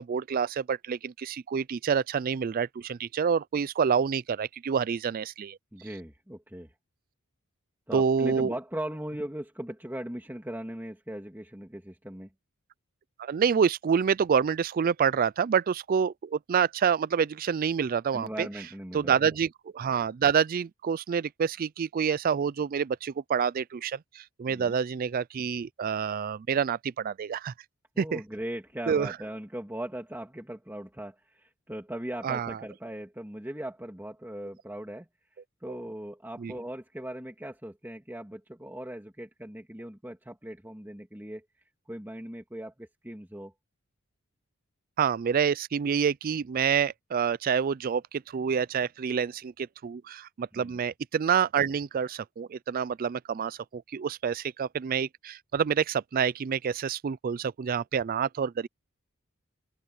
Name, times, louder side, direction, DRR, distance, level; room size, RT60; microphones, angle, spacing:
voice 1, 0.0-5.6 7.9-8.5 13.2-18.5 18.9-27.5 28.0-28.2 28.9-29.2 32.2-32.6 35.7-35.8 36.4-36.5 45.0-58.7, right 7 dB, 40° right, 0.3 m, -27 dB
voice 2, 5.7-6.7 7.9-12.3 18.1-19.1 24.5-24.8 28.0-35.1 35.6-41.4 41.9-43.5 50.5-50.8, right 1 dB, 10° right, 2.3 m, -39 dB
open air
head